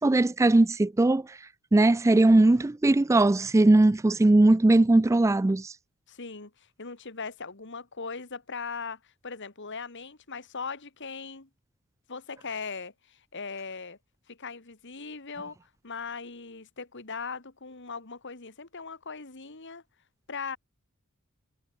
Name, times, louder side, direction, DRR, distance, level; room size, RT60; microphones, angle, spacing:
voice 1, 0.0-1.4 1.7-5.7, right 2 dB, 15° right, 0.3 m, -20 dB
voice 2, 6.1-11.5 12.1-14.0 14.3-19.8 20.3-20.6, left 5 dB, 55° left, 2.0 m, -39 dB
head